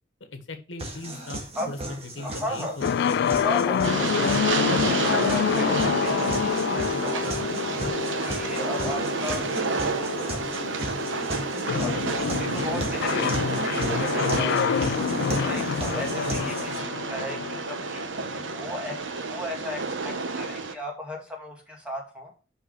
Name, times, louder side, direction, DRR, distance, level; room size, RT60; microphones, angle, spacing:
voice 1, 0.3-3.3 12.4-12.7 14.5-14.9, left 2 dB, 85° left, 7 dB, 1.3 m, -38 dB
sound 1, 0.8-16.8, equal, 35° right, 1.8 m, -36 dB
voice 2, 2.2-2.8 3.4-4.4 4.7-7.5 8.2-9.5 10.0-10.4 11.8-13.4 13.8-14.5 15.4-17.4 17.7-18.0 18.5-22.3, left 1 dB, 5° right, -1 dB, 2.4 m, -36 dB
sound 2, 2.8-18.6, left 7 dB, 60° left, 0.3 m, -28 dB
Train, 3.8-20.7, right 4 dB, 80° right, 0.9 m, -30 dB
5.7 x 5.5 x 6.3 m, 0.34 s
head